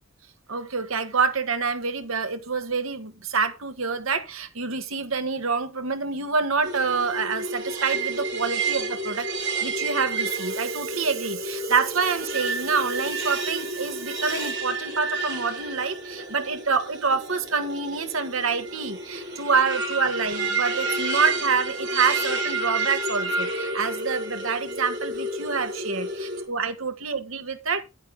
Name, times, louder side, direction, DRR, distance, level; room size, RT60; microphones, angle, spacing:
voice 1, 0.5-27.8, right 5 dB, 80° right, 1.8 m, -27 dB
sound 1, 6.6-26.4, right 2 dB, 60° right, 4.2 m, -30 dB
10.5 x 9.0 x 3.6 m
head